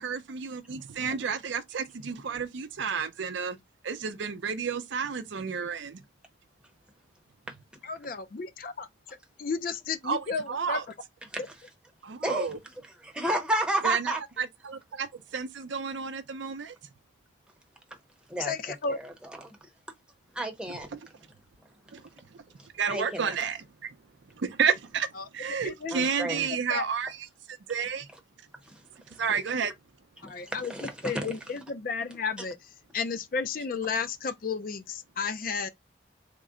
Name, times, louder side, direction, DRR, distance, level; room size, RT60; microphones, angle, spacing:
voice 1, 0.0-3.6 3.8-6.0 10.0-10.8 12.0-12.6 13.2-13.4 13.8-16.8 20.9-21.0 21.9-22.0 22.3-22.4 22.7-23.9 24.4-27.1 27.5-28.1 29.2-29.7, right 6 dB, 70° right, 0.5 m, -31 dB
voice 2, 7.8-8.9 9.4-10.8 18.4-19.0 25.2-25.3 25.6-26.4 26.7-26.9 30.2-30.7 31.0-32.6 32.9-35.7, left 5 dB, 45° left, 0.4 m, -33 dB
voice 3, 12.2-12.5 13.0-14.2 18.3-18.5 18.9-19.6 20.3-20.9 22.9-23.4 25.9-26.5 28.6-28.8 29.1-29.2 30.2-31.4, right 1 dB, 5° right, 0.7 m, -32 dB
3.7 x 2.1 x 3.6 m
head